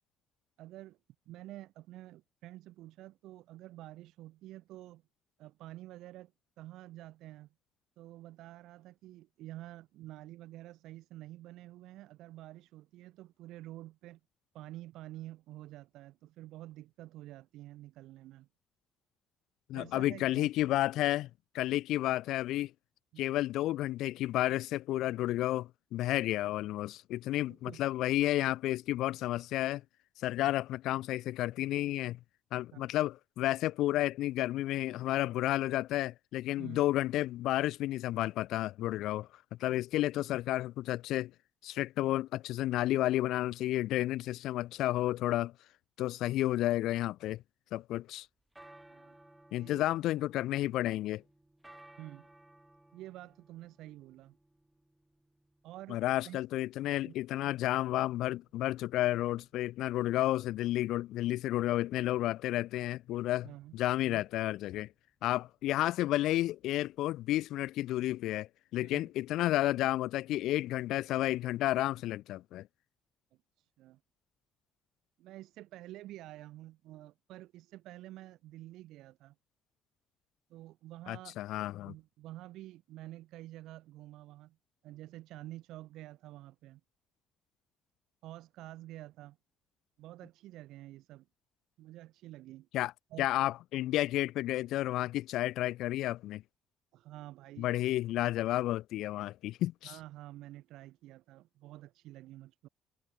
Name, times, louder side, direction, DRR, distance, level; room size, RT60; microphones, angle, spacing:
voice 1, 0.6-1.0 1.3-5.0 5.4-6.3 6.6-7.5 8.0-14.2 14.5-18.5 19.7-20.5 23.1-23.3 27.5-27.8 30.4-30.5 32.7-32.9 36.6-36.8 48.9-49.1 49.5-49.8 50.6-50.7 52.0-52.3 52.9-54.4 55.6-56.4 57.1-57.2 63.4-63.7 64.0-64.2 68.8-69.1 73.6-74.0 75.2-79.3 80.5-81.4 81.8-84.6 84.8-86.8 88.2-89.4 90.0-91.3 91.8-92.7 93.1-93.3 96.9-97.7 99.8-102.7, right 15 dB, 80° right, 1.2 m, -49 dB
voice 2, 19.7-21.3 21.5-22.7 23.2-29.8 30.2-32.2 32.5-39.3 39.6-41.3 41.6-45.5 46.0-47.4 47.7-48.3 49.5-51.2 55.9-63.5 63.7-64.9 65.2-72.6 81.1-81.9 92.7-92.9 93.2-96.4 97.6-99.9, left 15 dB, 80° left, 0.4 m, -31 dB
sound 1, 48.2-67.2, right 1 dB, 10° right, 2.5 m, -62 dB
cardioid pair, 110°, 0 cm